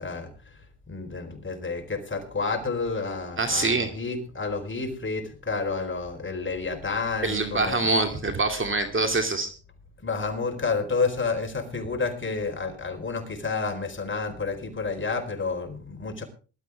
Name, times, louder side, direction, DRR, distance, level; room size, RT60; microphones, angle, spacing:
voice 1, 0.0-7.9 10.0-16.2, left 4 dB, 25° left, 5 dB, 4.4 m, -30 dB
voice 2, 3.4-3.9 7.2-9.5, right 3 dB, 25° right, 6 dB, 2.6 m, -25 dB
20.0 x 12.5 x 3.5 m, 0.36 s
cardioid pair, 90°, 45 cm